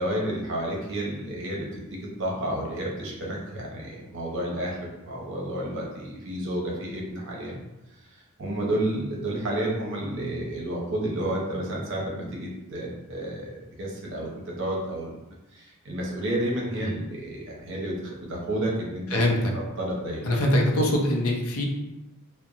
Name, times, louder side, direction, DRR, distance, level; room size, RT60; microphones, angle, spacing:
voice 1, 0.0-7.6 8.4-13.5 13.8-15.1 15.5-19.2 19.5-20.2, right 1 dB, 60° right, -3 dB, 0.7 m, -31 dB
voice 2, 19.1-19.5 20.2-21.6, left 1 dB, 80° left, 0 dB, 0.5 m, -23 dB
2.9 x 2.1 x 2.4 m, 0.98 s
head